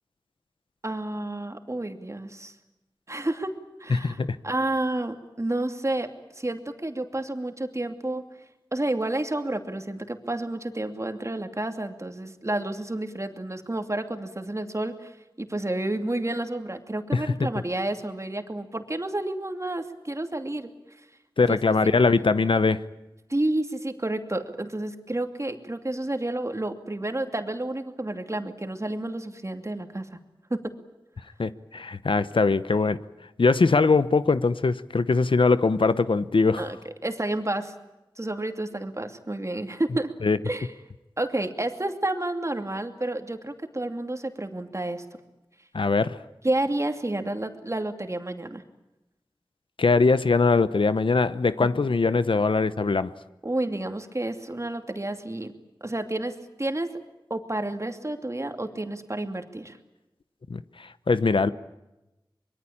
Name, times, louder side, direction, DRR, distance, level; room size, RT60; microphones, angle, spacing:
voice 1, 0.8-2.5 3.1-3.5 3.8-4.2 4.4-6.1 6.4-8.2 8.7-15.1 15.4-20.7 21.5-21.6 23.3-30.2 30.5-30.6 36.6-36.8 37.0-37.7 38.2-40.1 40.4-40.7 41.2-45.0 46.4-48.6 51.6-51.8 53.4-55.5 55.8-56.9 57.3-59.8, right 1 dB, 35° right, 2.6 m, -30 dB
voice 2, 3.9-4.3 17.1-17.5 21.4-22.8 31.4-33.0 33.4-36.6 40.2-40.4 45.7-46.2 49.8-53.1 60.5-61.5, left 4 dB, 80° left, 0.9 m, -22 dB
24.5 x 22.0 x 8.7 m
wide cardioid pair, 45°, 9 cm